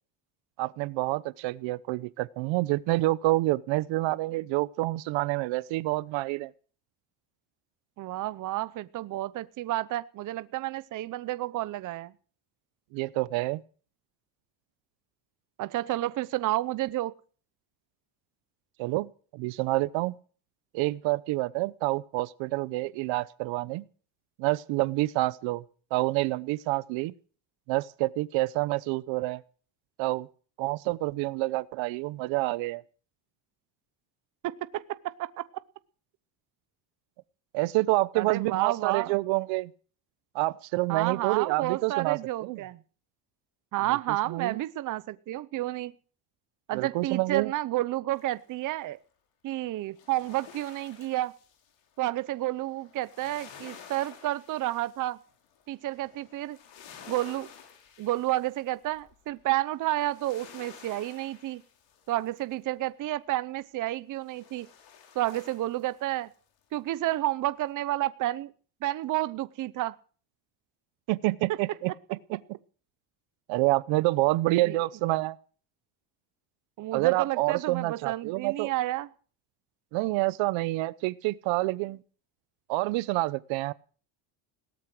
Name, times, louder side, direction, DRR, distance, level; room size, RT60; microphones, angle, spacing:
voice 1, 0.6-6.5 12.9-13.6 18.8-20.2 20.7-23.8 24.4-25.6 25.9-27.1 27.7-29.4 30.0-30.3 30.6-32.8 37.5-39.7 40.3-42.6 44.3-44.6 46.7-47.5 71.1-72.4 73.5-75.4 76.9-78.7 79.9-82.0 82.7-83.7, right 20 dB, 70° right, 0.9 m, -28 dB
voice 2, 8.0-12.1 15.6-17.1 34.4-35.5 38.2-39.1 40.9-42.8 43.7-45.9 46.7-49.0 49.4-51.3 52.0-55.2 55.7-56.6 57.1-57.5 58.0-61.6 62.1-64.7 65.1-66.3 66.7-68.5 68.8-70.0 71.5-71.6 74.6-74.8 76.8-79.1, right 16 dB, 40° right, 0.8 m, -30 dB
sound 1, 48.1-48.8 49.8-62.7 64.2-66.4 66.7-66.8, left 7 dB, 65° left, 4.7 m, -52 dB
18.0 x 13.0 x 6.1 m
cardioid pair, 155°, 48 cm